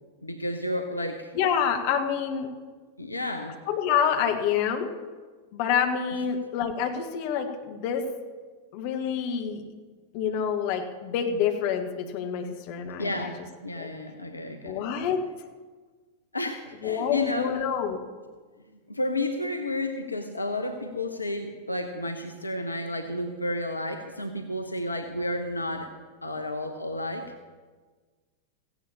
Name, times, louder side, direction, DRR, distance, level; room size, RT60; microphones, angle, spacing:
voice 1, 0.2-1.3 3.0-3.6 13.0-14.9 16.3-17.7 18.9-25.9 26.2-27.2, left 1 dB, 80° left, 6 dB, 0.8 m, -31 dB
voice 2, 1.3-2.5 3.6-4.9 5.5-8.1 8.7-9.7 10.1-13.3 13.7-13.9 14.6-15.2 16.8-18.0, left 8 dB, 45° left, 4 dB, 1.5 m, -27 dB
17.0 x 15.5 x 2.9 m, 1.4 s
figure-of-eight pair, 90°, 0 cm